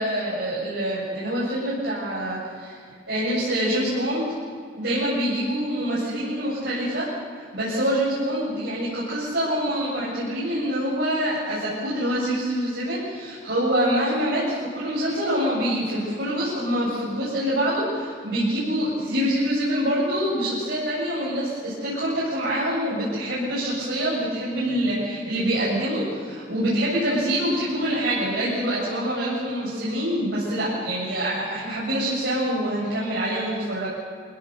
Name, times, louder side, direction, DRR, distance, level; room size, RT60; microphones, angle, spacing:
voice 1, 0.0-2.8 3.1-4.2 4.7-7.1 7.4-33.9, equal, 70° right, -9 dB, 8.0 m, -25 dB
27.0 x 18.0 x 7.0 m, 2.1 s
head